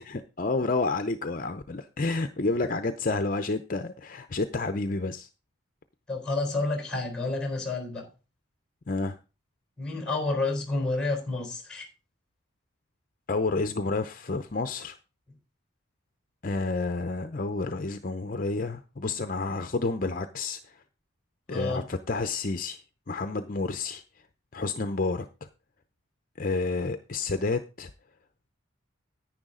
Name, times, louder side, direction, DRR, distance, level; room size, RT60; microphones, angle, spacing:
voice 1, 0.0-5.3 8.9-9.2 13.3-15.0 16.4-20.6 21.5-22.8 23.1-24.0 24.5-25.3 26.4-27.9, left 3 dB, 45° left, 9 dB, 0.6 m, -30 dB
voice 2, 6.1-8.1 9.8-11.9 21.5-21.8, left 3 dB, 5° left, 4 dB, 3.9 m, -29 dB
10.5 x 9.7 x 3.8 m, 0.30 s
head